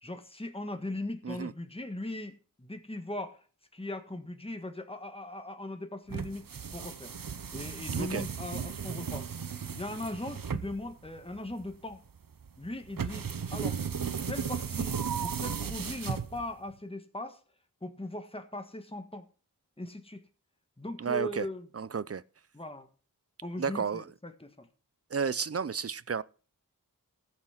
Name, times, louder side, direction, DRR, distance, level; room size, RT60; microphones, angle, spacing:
voice 1, 0.0-3.4 3.7-7.1 7.5-9.3 9.7-12.0 12.6-13.8 14.3-17.4 17.8-19.3 19.8-20.2 20.8-21.7 22.5-22.9 23.4-24.7, left 1 dB, 15° left, 1.5 m, -39 dB
sound 1, 6.1-16.7, right 6 dB, 75° right, 0.8 m, -35 dB
voice 2, 21.0-21.5 21.7-22.2 23.6-24.0 25.1-26.2, right 6 dB, 45° right, 0.5 m, -32 dB
14.5 x 6.2 x 5.8 m
wide cardioid pair, 55°, 35 cm